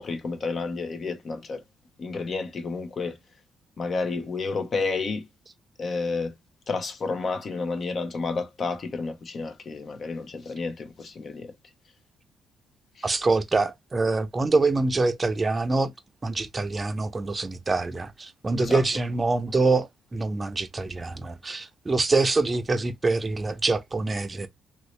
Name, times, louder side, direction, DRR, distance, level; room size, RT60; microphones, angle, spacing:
voice 1, 0.0-1.6 2.0-3.2 3.8-5.2 5.8-6.3 6.7-11.5 13.0-13.1 18.6-18.8, left 4 dB, 45° left, 0.8 m, -30 dB
voice 2, 13.0-15.9 16.2-24.5, right 3 dB, 25° right, 0.6 m, -25 dB
3.0 x 2.7 x 3.1 m
cardioid pair, 90°, 0 cm